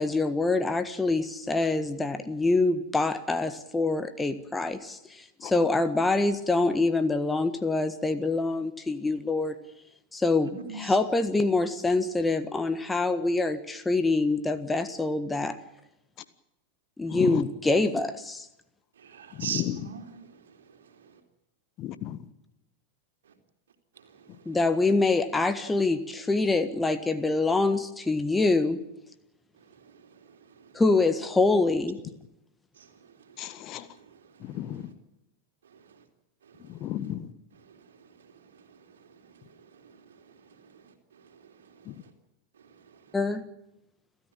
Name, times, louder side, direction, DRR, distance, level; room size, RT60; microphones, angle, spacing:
voice 1, 0.0-9.5 10.1-15.6 17.0-17.9 18.3-18.5 24.4-28.8 30.7-32.0 43.1-43.4, left 3 dB, 10° left, 1.5 m, -25 dB
voice 2, 17.1-17.5 19.3-19.9 21.8-22.2 33.4-33.9 34.4-34.9 36.7-37.3 41.8-41.9, left 12 dB, 35° left, 1.5 m, -33 dB
voice 3, 19.0-20.4 29.9-30.2 30.6-30.7 32.8-32.9 33.4-33.5 34.1-34.2 35.7-35.8 36.5-36.6 37.7-37.8 38.7-38.8 39.8-39.9 40.6-40.9 41.3-41.4, right 7 dB, 65° right, 3.6 m, -40 dB
30.0 x 13.5 x 9.0 m
figure-of-eight pair, 90°, 0 cm